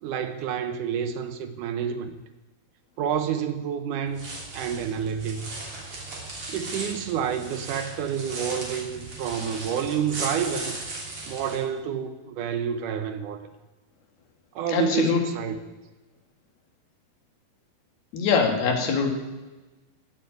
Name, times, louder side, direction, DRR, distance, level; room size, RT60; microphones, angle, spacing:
voice 1, 0.0-2.1 3.0-4.3 4.5-5.7 6.5-10.8 11.3-13.4 14.6-15.6, right 8 dB, 70° right, 9 dB, 2.1 m, -29 dB
sound 1, 4.1-11.6, right 2 dB, 35° right, 3.5 m, -37 dB
voice 2, 14.7-15.2 18.1-19.1, left 5 dB, 75° left, 4 dB, 3.8 m, -23 dB
16.0 x 7.4 x 9.5 m, 1.2 s
omnidirectional pair, 4.4 m